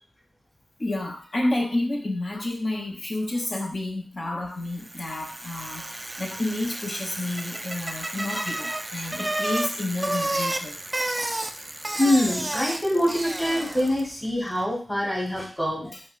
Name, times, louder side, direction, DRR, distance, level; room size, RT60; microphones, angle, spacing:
voice 1, 0.8-10.8 12.0-12.1 15.9-16.0, left 1 dB, 50° left, 0 dB, 0.9 m, -30 dB
Bicycle, 4.7-14.1, right 1 dB, 25° right, 0.3 m, -31 dB
voice 2, 11.9-15.9, left 1 dB, 15° left, -3 dB, 1.2 m, -25 dB
5.1 x 2.2 x 2.4 m, 0.40 s
cardioid pair, 50°, 0 cm